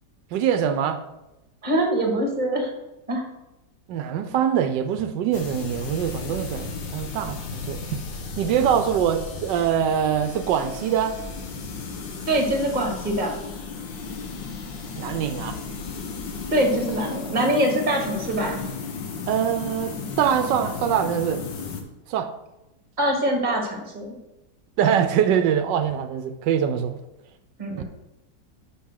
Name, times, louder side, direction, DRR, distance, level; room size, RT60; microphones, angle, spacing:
voice 1, 0.3-1.0 3.9-8.0 8.4-11.2 15.0-15.6 19.3-21.4 22.1-22.3 24.8-27.0 27.7-27.8, right 8 dB, 85° right, 9 dB, 1.3 m, -23 dB
voice 2, 1.6-2.7 3.1-3.3 12.3-13.3 16.5-18.6 23.0-24.2 27.6-27.8, right 1 dB, 25° right, 2 dB, 1.6 m, -23 dB
sound 1, 5.3-21.8, left 5 dB, 90° left, 1.8 m, -34 dB
6.0 x 5.8 x 6.4 m, 0.94 s
omnidirectional pair, 1.9 m